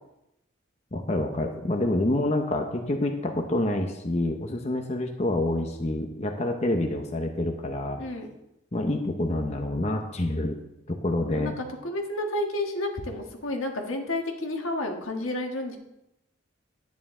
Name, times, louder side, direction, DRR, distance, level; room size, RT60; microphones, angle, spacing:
voice 1, 0.9-8.0 8.7-10.6 10.9-11.6, left 1 dB, 35° left, 4 dB, 0.8 m, -27 dB
voice 2, 11.8-15.8, left 1 dB, 85° left, 3 dB, 1.5 m, -31 dB
11.0 x 9.4 x 3.7 m, 0.89 s
head